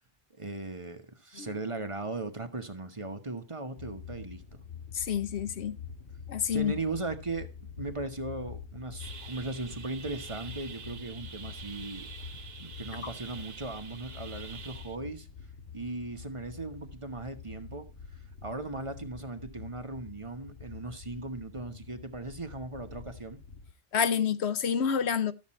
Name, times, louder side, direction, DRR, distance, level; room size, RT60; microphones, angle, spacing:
voice 1, 0.3-4.6 6.5-7.5 7.8-12.1 12.6-15.3 15.7-17.9 18.1-23.4, right 2 dB, 30° right, 1.2 m, -38 dB
sound 1, 3.8-23.7, left 6 dB, 55° left, 1.7 m, -46 dB
voice 2, 4.9-5.8 6.3-6.7 23.9-25.3, left 7 dB, 70° left, 1.1 m, -28 dB
sound 2, 9.0-15.0, right 6 dB, 60° right, 1.3 m, -46 dB
13.0 x 7.4 x 4.3 m
omnidirectional pair, 1.2 m